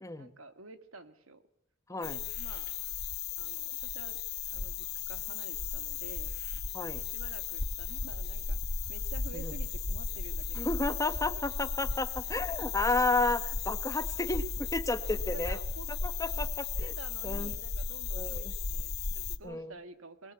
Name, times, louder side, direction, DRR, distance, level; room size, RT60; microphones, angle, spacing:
voice 1, 0.1-1.4 1.9-2.7 3.4-4.2 4.5-6.3 6.9-10.9 15.4-15.9 16.3-16.5 16.8-20.3, right 3 dB, 80° right, 10 dB, 1.8 m, -50 dB
sound 1, 2.0-19.4, left 5 dB, 50° left, 1.2 m, -35 dB
voice 2, 10.6-15.6 16.0-16.9 17.2-17.5 18.1-18.5 19.4-19.7, left 2 dB, 15° left, 11 dB, 0.9 m, -32 dB
21.0 x 21.0 x 8.3 m, 0.77 s
head